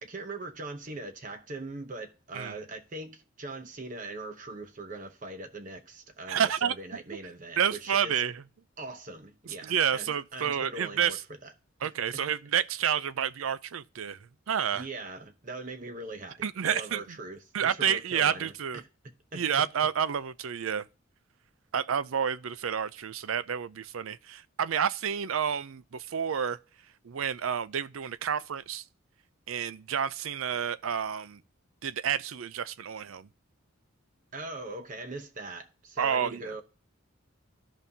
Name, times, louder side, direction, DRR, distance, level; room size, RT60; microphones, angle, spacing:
voice 1, 0.0-8.2 8.8-11.2 11.4-11.5 12.1-12.2 14.7-18.9 19.3-19.4 34.3-36.6, right 2 dB, 40° right, 0.8 m, -41 dB
voice 2, 6.3-6.7 7.6-8.4 9.6-11.2 11.8-14.2 14.5-14.8 16.4-17.2 17.5-18.8 19.3-20.9 21.7-26.6 27.0-28.8 29.5-31.4 31.8-33.3 36.0-36.5, right 8 dB, 75° right, 0.5 m, -29 dB
13.5 x 5.3 x 2.8 m
head